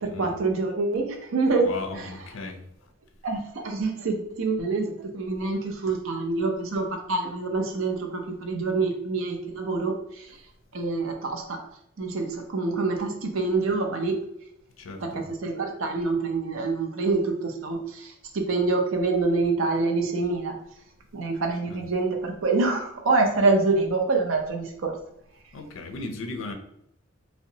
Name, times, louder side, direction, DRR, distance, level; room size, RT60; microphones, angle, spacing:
voice 1, 0.0-1.7 1.9-2.1 3.2-9.9 10.7-11.6 12.0-14.2 15.0-20.6 21.1-24.9, right 3 dB, 85° right, 3 dB, 0.5 m, -26 dB
voice 2, 1.6-2.6 14.8-15.3 21.7-21.8 25.5-26.5, left 2 dB, 75° left, 5 dB, 0.5 m, -36 dB
2.7 x 2.1 x 2.7 m, 0.74 s
head